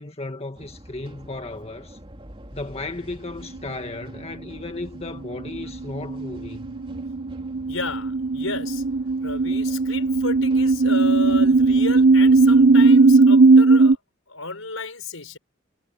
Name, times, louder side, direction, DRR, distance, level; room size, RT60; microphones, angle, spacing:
voice 1, 0.0-2.0 2.5-6.8, left 2 dB, 30° left, 1.7 m, -35 dB
sound 1, 0.5-12.9, equal, 25° right, 3.0 m, -45 dB
sound 2, 5.3-14.0, right 3 dB, 65° right, 0.8 m, -17 dB
voice 2, 7.7-8.8 9.2-14.0 14.3-15.4, left 3 dB, 80° left, 5.2 m, -32 dB
head